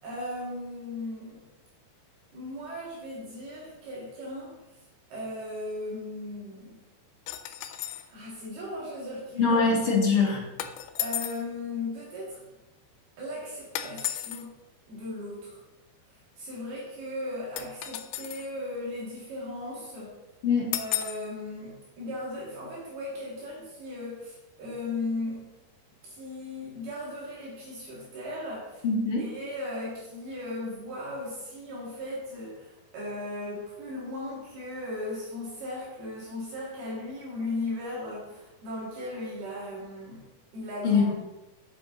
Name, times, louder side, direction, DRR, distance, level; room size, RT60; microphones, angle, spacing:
voice 1, 0.0-1.5 2.3-4.5 5.1-6.8 8.1-9.6 11.0-12.4 13.2-14.5 14.9-15.6 16.4-20.1 20.7-25.5 26.0-28.9 29.2-40.3 40.5-41.1, left 1 dB, 75° right, -6 dB, 4.1 m, -37 dB
sound 1, 7.3-8.1 10.6-11.5 13.7-14.4 17.6-18.5 20.7-21.3, left 13 dB, 85° left, 2.5 m, -33 dB
voice 2, 9.4-10.4 20.4-20.7 28.8-29.3 40.8-41.1, left 4 dB, 50° left, -3 dB, 1.7 m, -23 dB
7.7 x 7.7 x 3.8 m, 1.0 s
omnidirectional pair, 4.5 m